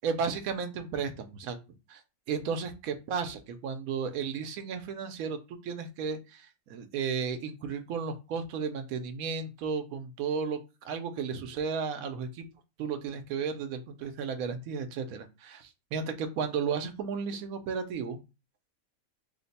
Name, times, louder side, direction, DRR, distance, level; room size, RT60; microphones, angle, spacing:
voice 1, 0.0-1.6 1.9-2.0 2.3-12.4 12.8-18.2, right 6 dB, 80° right, 7 dB, 1.1 m, -34 dB
3.2 x 2.1 x 4.0 m, 0.27 s
omnidirectional pair, 1.5 m